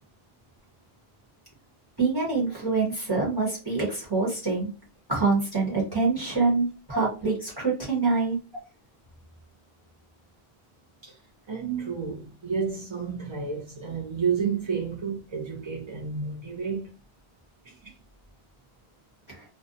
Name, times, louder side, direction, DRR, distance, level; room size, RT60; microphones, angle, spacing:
voice 1, 2.0-4.7 5.1-8.4, right 4 dB, 25° right, 0.9 m, -25 dB
voice 2, 11.5-16.9 17.6-17.9, right 6 dB, 45° right, 0.4 m, -31 dB
2.5 x 2.1 x 2.5 m
omnidirectional pair, 1.0 m